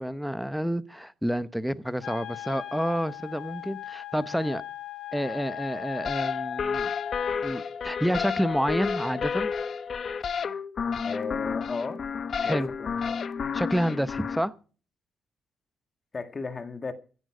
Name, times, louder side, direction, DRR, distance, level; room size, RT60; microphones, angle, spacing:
voice 1, 0.0-4.6 5.1-6.9 7.4-9.5 12.4-12.7 13.5-14.5, equal, ahead, 0.9 m, -29 dB
Wind instrument woodwind instrument, 2.0-7.4, left 12 dB, 70° left, 1.8 m, -38 dB
sound 1, 6.0-14.4, left 6 dB, 45° left, 0.8 m, -31 dB
voice 2, 11.0-12.0 12.4-13.2 16.1-16.9, left 4 dB, 30° left, 1.8 m, -35 dB
16.0 x 11.0 x 5.0 m
cardioid pair, 110°, 0 cm